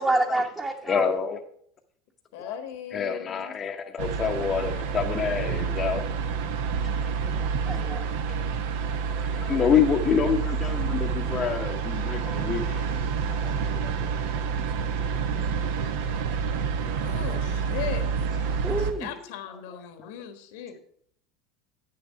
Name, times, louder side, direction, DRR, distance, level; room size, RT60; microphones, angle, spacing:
voice 1, 0.0-1.1 7.3-8.1 18.6-19.1, right 2 dB, 15° right, 1 dB, 1.0 m, -28 dB
voice 2, 0.9-1.4 2.4-2.6 2.9-6.0 9.1-12.9 13.3-14.1 17.3-17.4, left 7 dB, 35° left, 2 dB, 0.7 m, -27 dB
voice 3, 2.3-3.6 17.0-18.1 18.3-20.8, left 9 dB, 80° left, 9 dB, 1.3 m, -38 dB
sound 1, 4.0-18.9, right 6 dB, 80° right, 1.0 m, -28 dB
8.7 x 6.8 x 5.5 m, 0.65 s
supercardioid pair, 115°, 0 cm